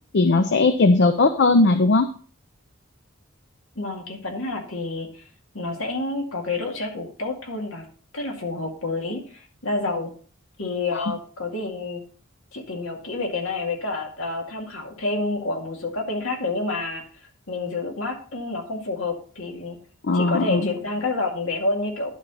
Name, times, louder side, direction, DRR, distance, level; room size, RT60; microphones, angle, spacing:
voice 1, 0.1-2.1 20.0-20.6, left 3 dB, 60° left, 9 dB, 0.6 m, -18 dB
voice 2, 3.8-5.2 5.5-7.8 8.1-10.1 10.6-12.0 12.5-17.0 17.5-19.8 20.1-22.2, left 3 dB, 85° left, 1 dB, 2.3 m, -28 dB
11.5 x 4.4 x 5.5 m, 0.43 s
head